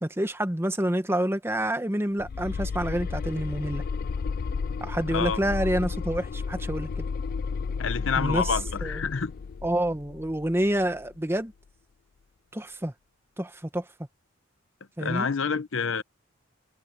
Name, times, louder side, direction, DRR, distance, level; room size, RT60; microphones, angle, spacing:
voice 1, 0.0-3.8 4.8-7.0 8.2-8.5 8.8-9.0 9.6-11.5 12.5-12.9 13.4-13.8 15.0-15.3, right 1 dB, 10° right, 1.1 m, -28 dB
sound 1, 2.2-11.1, left 5 dB, 45° left, 0.3 m, -32 dB
voice 2, 5.1-5.4 7.8-9.3 15.0-16.0, left 5 dB, 70° left, 0.8 m, -28 dB
head